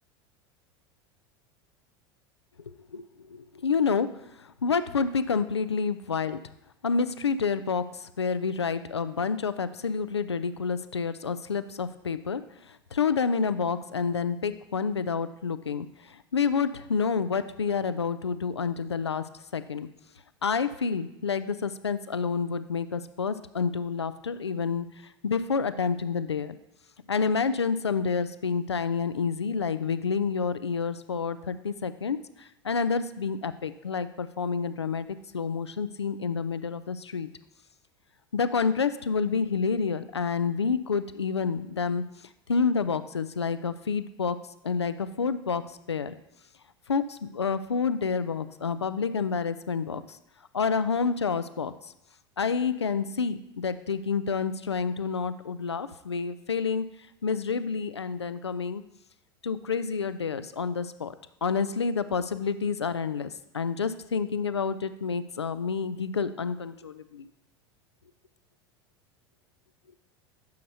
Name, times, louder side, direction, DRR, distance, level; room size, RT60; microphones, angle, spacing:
voice 1, 2.7-6.4 6.8-19.2 19.5-19.9 20.4-24.9 25.2-26.6 27.1-35.1 35.3-37.3 38.3-42.0 42.5-44.4 44.6-46.1 46.9-50.2 50.5-51.7 52.4-56.8 57.2-58.8 59.4-61.1 61.4-67.3, left 5 dB, 85° left, 13 dB, 0.4 m, -29 dB
9.3 x 6.5 x 2.7 m, 0.83 s
figure-of-eight pair, 80°, 14 cm